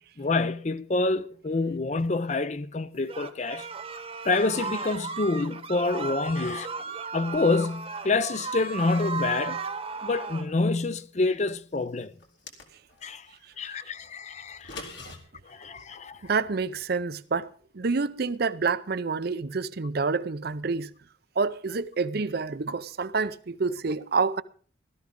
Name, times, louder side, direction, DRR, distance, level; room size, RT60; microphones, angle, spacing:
voice 1, 0.2-3.7 4.2-6.7 7.1-9.6 10.0-12.1 13.0-13.3 13.6-14.9 15.5-16.2, left 3 dB, 35° left, 0.6 m, -27 dB
sound 1, 3.1-10.5, right 4 dB, 30° right, 1.1 m, -35 dB
sound 2, 12.2-13.1 14.5-15.2, left 3 dB, 65° left, 2.6 m, -42 dB
voice 2, 16.2-20.9 21.4-24.4, right 4 dB, 50° right, 0.6 m, -28 dB
16.5 x 13.0 x 3.7 m
head